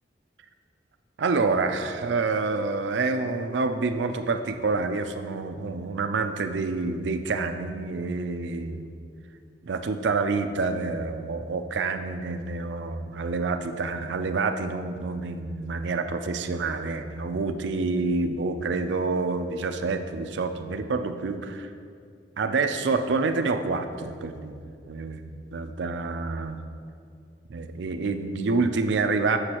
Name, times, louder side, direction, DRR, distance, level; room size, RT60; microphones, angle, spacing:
voice 1, 1.2-8.9 9.6-21.7 22.4-26.6 27.5-29.4, right 3 dB, 85° right, 7 dB, 0.4 m, -27 dB
7.9 x 6.9 x 2.9 m, 2.3 s
head